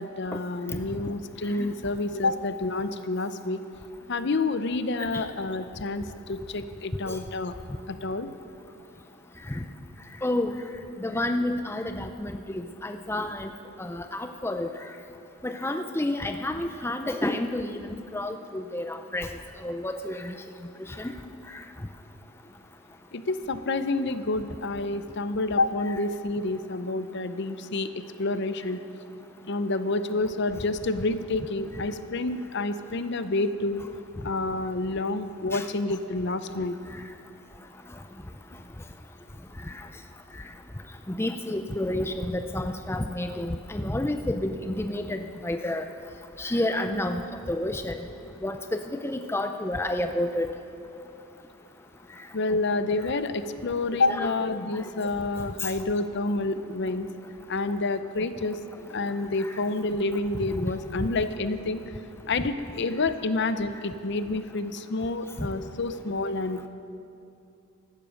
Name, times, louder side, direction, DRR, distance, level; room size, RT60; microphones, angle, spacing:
voice 1, 0.0-3.6 4.1-6.0 6.3-7.5 8.0-8.3 23.1-27.9 28.2-28.8 29.5-33.8 34.2-36.8 52.3-57.1 57.5-58.6 58.9-61.8 62.3-66.7, left 2 dB, 55° left, 11 dB, 0.6 m, -28 dB
voice 2, 10.2-10.5 11.0-13.5 13.8-14.7 15.4-17.8 18.1-19.3 19.6-20.3 21.0-21.1 35.5-35.6 41.2-45.8 46.4-47.2 47.5-47.9 48.4-50.5 54.1-54.3, left 1 dB, 10° left, 6 dB, 0.5 m, -29 dB
16.0 x 12.0 x 6.4 m, 2.6 s
head